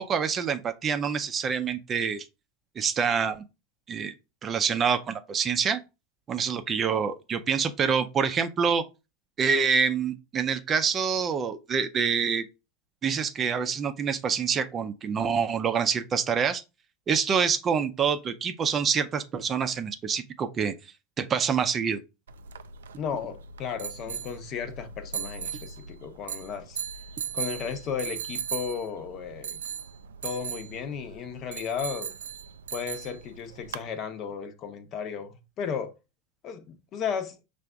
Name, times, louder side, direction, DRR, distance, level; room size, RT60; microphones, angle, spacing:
voice 1, 0.0-2.2 2.8-3.4 3.9-4.1 4.4-5.8 6.3-8.8 9.4-12.4 13.0-16.6 17.1-20.7 21.2-22.0, right 6 dB, 30° right, 0.6 m, -26 dB
sound 1, 22.3-33.9, right 7 dB, 75° right, 0.3 m, -38 dB
voice 2, 23.0-26.8 27.3-29.6 30.2-32.1 32.7-36.0 36.4-37.4, left 7 dB, 40° left, 0.8 m, -34 dB
5.6 x 2.5 x 3.4 m
hypercardioid pair, 85°, 0 cm